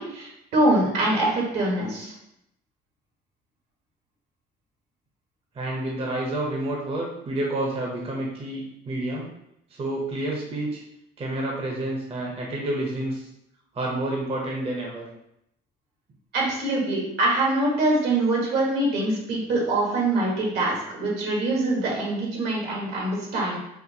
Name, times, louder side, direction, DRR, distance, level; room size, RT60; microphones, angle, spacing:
voice 1, 0.0-2.1 16.3-23.6, right 2 dB, 75° right, -2 dB, 1.3 m, -24 dB
voice 2, 5.5-9.3 9.7-10.8 11.2-13.3 13.7-15.1, right 1 dB, 35° right, -2 dB, 0.8 m, -29 dB
4.3 x 2.4 x 2.8 m, 0.80 s
cardioid pair, 110°, 17 cm